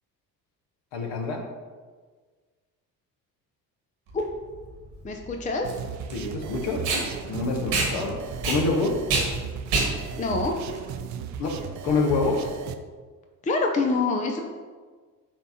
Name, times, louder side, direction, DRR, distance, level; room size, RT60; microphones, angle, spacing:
voice 1, 0.9-1.4 6.1-6.8 7.3-8.2 8.4-8.9 11.4-11.5 11.8-12.5, left 3 dB, 55° left, 2 dB, 1.2 m, -26 dB
Packing tape duct tape, 4.1-11.6, right 3 dB, 65° right, 1.7 m, -29 dB
voice 2, 5.0-5.7 10.2-10.5 13.4-14.4, left 3 dB, 15° left, 3 dB, 0.6 m, -25 dB
sound 1, 5.6-12.7, right 7 dB, 40° right, 0.5 m, -36 dB
10.5 x 3.4 x 2.8 m, 1.5 s
figure-of-eight pair, 50°, 49 cm